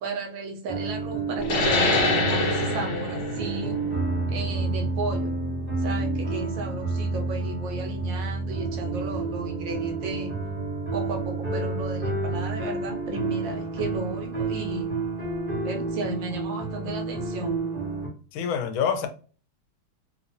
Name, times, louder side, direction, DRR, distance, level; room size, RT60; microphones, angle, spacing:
voice 1, 0.0-3.8 4.3-5.4 5.8-10.4 10.9-15.0 15.6-17.7, right 3 dB, 70° right, 1.4 m, -34 dB
sound 1, 0.7-18.1, right 3 dB, 25° right, 1.0 m, -30 dB
sound 2, 1.4-6.6, left 2 dB, 55° left, 1.0 m, -26 dB
voice 2, 18.3-19.1, left 7 dB, 85° left, 1.4 m, -26 dB
3.3 x 3.0 x 2.6 m
omnidirectional pair, 2.2 m